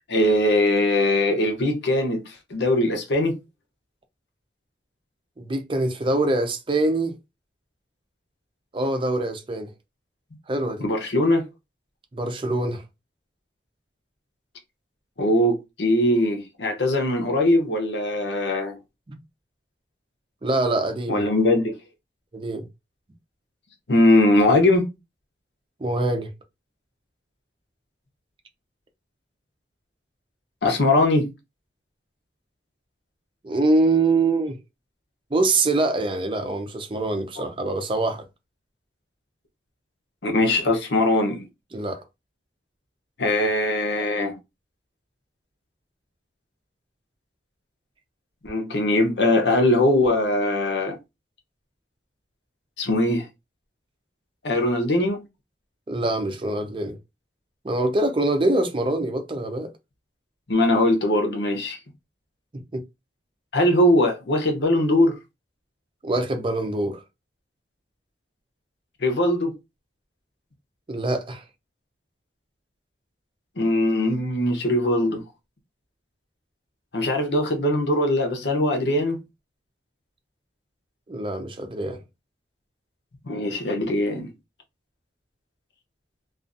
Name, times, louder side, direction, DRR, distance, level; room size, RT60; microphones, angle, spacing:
voice 1, 0.1-3.4 10.8-11.4 15.2-18.8 21.1-21.7 23.9-24.9 30.6-31.3 40.2-41.4 43.2-44.4 48.4-51.0 52.8-53.2 54.4-55.2 60.5-61.8 63.5-65.1 69.0-69.5 73.6-75.2 76.9-79.2 83.2-84.3, left 1 dB, 80° left, 0.8 m, -21 dB
voice 2, 5.4-7.1 8.7-9.7 10.5-10.8 12.1-12.8 19.1-19.2 20.4-21.3 22.3-22.7 25.8-26.3 33.4-34.6 35.3-38.2 41.7-42.0 55.9-57.0 57.6-59.7 62.7-62.8 66.0-67.0 70.9-71.4 81.1-82.0, right 2 dB, 30° right, 0.5 m, -24 dB
2.5 x 2.4 x 2.5 m
head